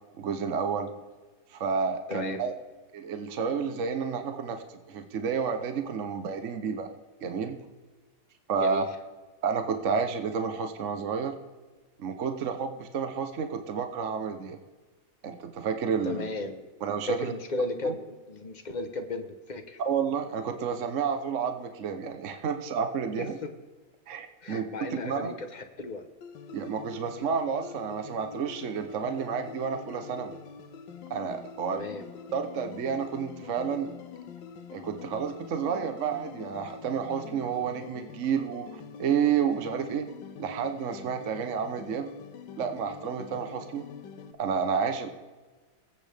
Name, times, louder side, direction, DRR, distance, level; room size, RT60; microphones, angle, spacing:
voice 1, 0.2-0.9 1.5-2.5 2.9-6.9 7.2-7.6 8.5-8.8 9.4-11.3 12.0-14.6 15.2-16.3 16.8-17.3 17.8-17.9 19.8-23.3 24.1-24.6 24.9-25.3 26.5-30.4 31.1-31.9 32.3-33.9 34.7-40.1 40.4-42.1 42.6-43.9 44.4-45.1, right 6 dB, 50° right, 7 dB, 0.9 m, -30 dB
voice 2, 2.1-2.5 8.6-8.9 16.0-16.6 17.1-19.8 23.2-23.5 24.4-26.1 31.7-32.1, left 2 dB, 40° left, 6 dB, 0.6 m, -35 dB
sound 1, 26.2-44.3, left 6 dB, 70° left, 1.4 m, -45 dB
20.5 x 8.4 x 3.4 m, 1.3 s
omnidirectional pair, 2.2 m